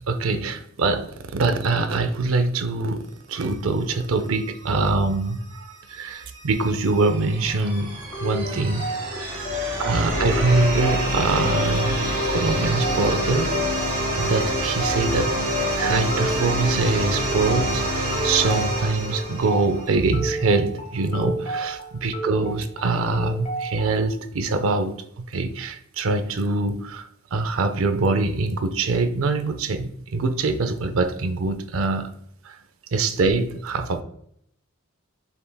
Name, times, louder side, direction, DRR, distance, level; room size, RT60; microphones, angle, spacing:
voice 1, 0.1-3.0 3.3-7.9 8.2-8.9 9.2-9.5 9.8-13.7 14.2-15.4 15.8-32.1 32.4-32.6 32.9-34.0, right 3 dB, 65° right, 8 dB, 0.5 m, -24 dB
sound 1, 6.2-20.0, right 1 dB, 40° right, 1.5 m, -27 dB
sound 2, 8.1-24.1, equal, 35° left, 1.1 m, -32 dB
sound 3, 10.1-16.1, left 2 dB, 55° left, 0.7 m, -35 dB
5.6 x 3.4 x 2.2 m, 0.68 s
head